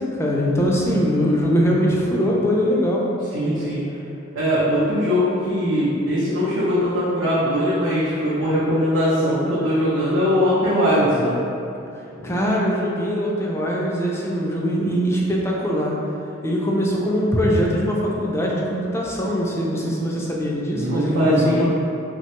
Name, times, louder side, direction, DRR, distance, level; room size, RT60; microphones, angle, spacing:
voice 1, 0.0-3.1 12.2-15.9 16.4-21.7, equal, 15° left, -3 dB, 0.3 m, -22 dB
voice 2, 3.3-3.8 4.3-11.3 12.2-12.3 20.7-21.7, equal, 80° right, -10 dB, 0.6 m, -20 dB
3.1 x 2.1 x 2.9 m, 2.7 s
head